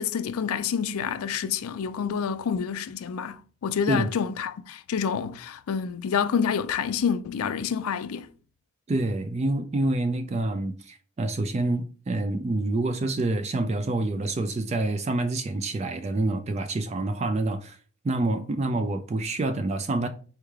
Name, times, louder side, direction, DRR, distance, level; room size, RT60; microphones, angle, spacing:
voice 1, 0.0-8.3, left 7 dB, 80° left, 0.4 m, -28 dB
voice 2, 8.9-17.8 18.0-20.1, right 2 dB, 30° right, 0.3 m, -27 dB
4.3 x 3.3 x 3.5 m
head